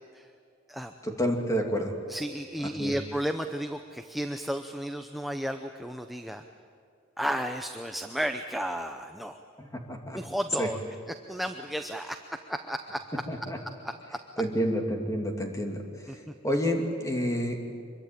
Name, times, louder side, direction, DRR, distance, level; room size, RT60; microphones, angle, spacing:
voice 1, 1.0-1.9 2.6-2.9 9.6-10.2 10.6-10.7 13.3-13.6 14.4-15.8 16.4-17.6, equal, 15° left, 2 dB, 2.7 m, -29 dB
voice 2, 2.1-6.4 7.2-9.4 10.1-10.8 11.1-12.2 12.5-13.2 13.8-14.2 16.1-16.3, equal, ahead, 5 dB, 0.8 m, -33 dB
25.0 x 22.5 x 9.0 m, 2.3 s
head